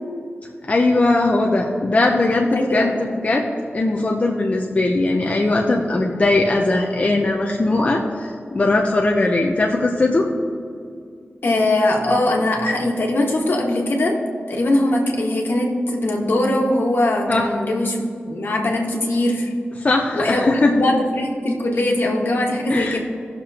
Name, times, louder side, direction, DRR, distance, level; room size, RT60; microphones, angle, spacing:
voice 1, 0.7-3.4 3.7-10.3 17.3-17.5 19.7-20.7 22.7-23.0, left 2 dB, 35° left, 0 dB, 0.7 m, -19 dB
voice 2, 2.5-3.0 11.4-14.2 14.5-19.5 20.1-23.0, left 1 dB, 65° left, 0 dB, 1.6 m, -21 dB
18.5 x 6.8 x 2.9 m, 2.3 s
wide cardioid pair, 130°, 4 cm